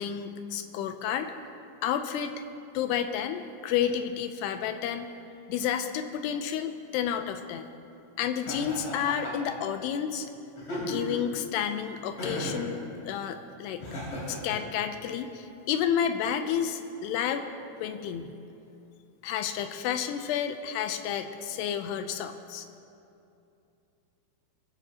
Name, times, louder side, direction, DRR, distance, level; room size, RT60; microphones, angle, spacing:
voice 1, 0.0-1.3 1.8-2.3 2.7-5.1 5.5-7.7 8.2-10.3 10.8-12.8 13.1-13.8 14.3-17.5 17.8-18.3 19.2-22.7, left 8 dB, 80° left, 8 dB, 2.6 m, -30 dB
Laughter, 8.5-9.5 10.6-11.3 12.2-12.7 13.8-14.6, left 1 dB, 35° left, 4.5 m, -35 dB
22.0 x 14.0 x 2.9 m, 2.7 s
omnidirectional pair, 5.2 m